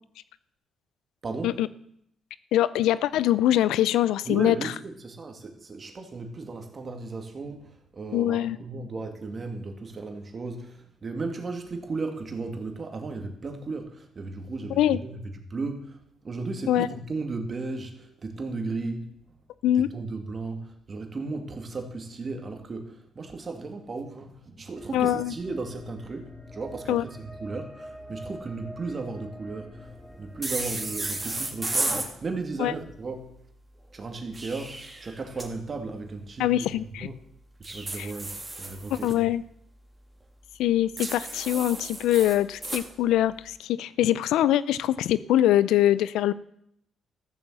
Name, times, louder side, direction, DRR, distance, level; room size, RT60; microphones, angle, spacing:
voice 1, 1.2-1.6 4.3-19.1 19.9-33.3 33.9-36.7 37.0-37.2 37.6-39.3, right 3 dB, 40° right, 5 dB, 2.5 m, -35 dB
voice 2, 2.5-4.7 8.1-8.6 14.8-15.0 16.7-16.9 19.6-19.9 24.9-25.3 26.9-27.0 32.6-32.7 36.4-37.1 38.0-38.1 38.9-39.4 40.6-46.3, left 12 dB, 80° left, 18 dB, 0.4 m, -23 dB
sound 1, 24.8-31.6, left 1 dB, 5° left, 3.4 m, -45 dB
sound 2, 30.4-32.1 34.1-35.5 37.6-39.1 41.0-42.8, right 2 dB, 25° right, 2.9 m, -33 dB
14.0 x 7.2 x 7.6 m, 0.74 s
supercardioid pair, 60°, 0 cm